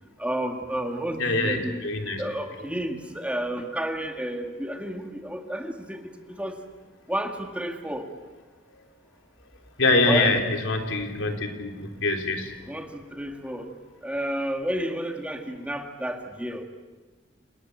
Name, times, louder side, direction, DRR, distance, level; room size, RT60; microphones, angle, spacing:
voice 1, 0.2-1.8 2.2-6.5 7.1-8.1 10.1-10.3 12.7-13.7 14.0-16.6, right 1 dB, 5° right, 3 dB, 2.0 m, -31 dB
voice 2, 1.2-2.2 9.8-12.5, left 2 dB, 85° left, 3 dB, 3.6 m, -24 dB
27.5 x 19.5 x 9.1 m, 1.3 s
head